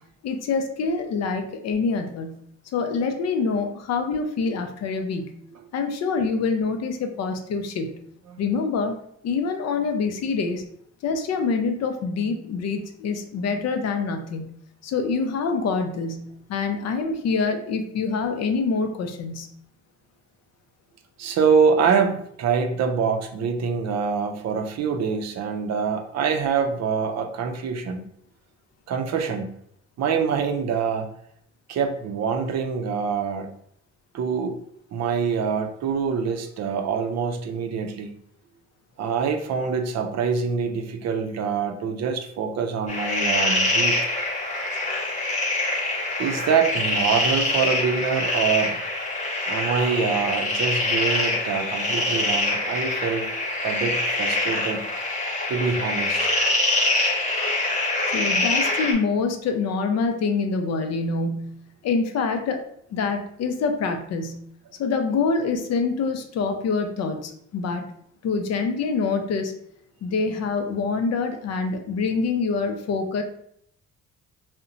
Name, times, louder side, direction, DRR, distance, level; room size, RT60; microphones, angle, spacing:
voice 1, 0.2-2.4 2.7-5.3 5.7-8.0 8.4-8.9 9.2-10.6 11.0-14.5 14.8-19.5 58.1-61.6 61.8-62.6 62.9-64.4 64.8-67.9 68.2-69.5 70.0-73.2, left 4 dB, 60° left, 6 dB, 0.5 m, -25 dB
voice 2, 21.2-28.0 28.9-29.5 30.0-31.1 31.7-33.5 34.1-34.6 34.9-38.1 39.0-44.0 46.2-48.8 49.5-53.3 53.6-54.8 55.5-56.3, right 6 dB, 60° right, 5 dB, 0.5 m, -25 dB
sound 1, 42.9-58.9, left 2 dB, 25° left, 0.9 m, -24 dB
2.7 x 2.1 x 2.5 m, 0.69 s
cardioid pair, 90°, 30 cm